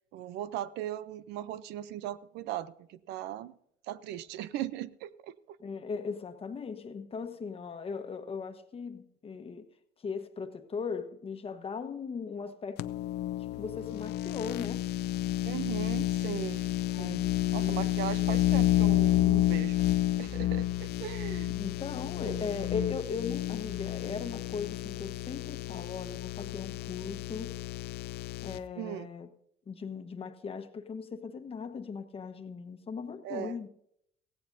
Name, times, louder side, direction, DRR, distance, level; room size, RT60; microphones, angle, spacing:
voice 1, 0.1-3.6 3.9-5.6 15.4-16.6 17.0-17.2 17.5-19.9 20.2-21.6 22.2-22.5 28.8-29.1 33.2-33.6, right 12 dB, 85° right, 0.6 m, -38 dB
voice 2, 5.6-9.7 10.0-12.9 13.6-14.9 16.9-17.8 21.5-27.6 28.4-29.3 29.7-33.7, left 5 dB, 35° left, 1.2 m, -38 dB
sound 1, 12.8-28.6, left 13 dB, 80° left, 0.6 m, -30 dB
16.5 x 16.0 x 2.7 m
cardioid pair, 110°, 17 cm